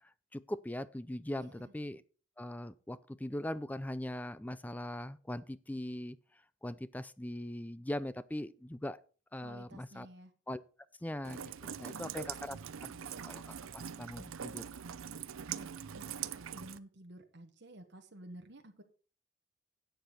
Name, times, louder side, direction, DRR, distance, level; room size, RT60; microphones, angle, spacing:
voice 1, 0.3-2.0 2.4-6.2 6.6-9.0 9.3-10.1 10.5-10.6 11.0-11.4 11.8-12.6 12.8-14.6, left 1 dB, 10° left, 0.4 m, -40 dB
voice 2, 1.3-1.7 9.4-10.3 11.6-12.2 15.5-18.8, right 1 dB, 55° right, 1.3 m, -53 dB
Rain, 11.2-16.8, right 8 dB, 85° right, 0.6 m, -43 dB
12.0 x 8.1 x 4.3 m
head